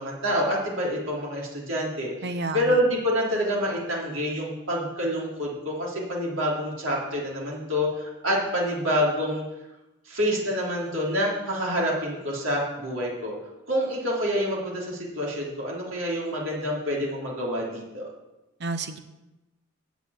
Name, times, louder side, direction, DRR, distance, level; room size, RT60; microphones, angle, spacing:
voice 1, 0.0-2.1 2.5-9.4 10.1-13.3 13.7-18.1, equal, 70° right, -3 dB, 3.5 m, -27 dB
voice 2, 2.2-2.8 18.6-19.0, right 3 dB, 55° right, 9 dB, 0.8 m, -30 dB
8.3 x 8.2 x 8.2 m, 1.0 s
head